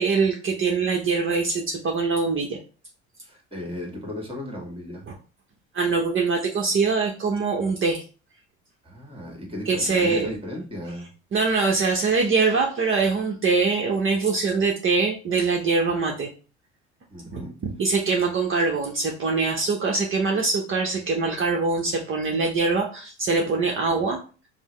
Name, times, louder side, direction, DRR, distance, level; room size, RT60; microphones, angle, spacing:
voice 1, 0.0-2.6 5.7-8.0 9.7-10.3 11.3-16.3 17.3-17.4 17.8-24.2, right 4 dB, 35° right, 1 dB, 0.9 m, -23 dB
voice 2, 3.2-5.1 8.8-11.1 17.1-17.6 17.8-17.9 23.7-24.1, left 1 dB, 15° right, 1 dB, 1.7 m, -36 dB
5.3 x 2.1 x 3.1 m, 0.36 s
hypercardioid pair, 65°, 35 cm